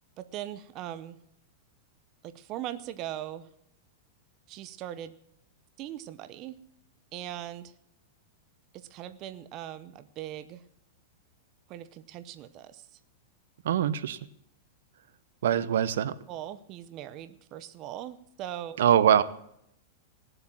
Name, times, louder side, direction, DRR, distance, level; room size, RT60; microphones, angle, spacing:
voice 1, 0.2-1.2 2.2-3.5 4.5-5.2 5.8-6.6 7.1-7.7 8.7-10.6 11.7-12.8 16.3-18.8, right 12 dB, 35° right, 12 dB, 0.7 m, -40 dB
voice 2, 13.6-14.2 15.4-16.1 18.8-19.2, right 9 dB, 75° right, 16 dB, 0.8 m, -23 dB
17.5 x 7.9 x 7.4 m, 0.74 s
supercardioid pair, 155°, 0 cm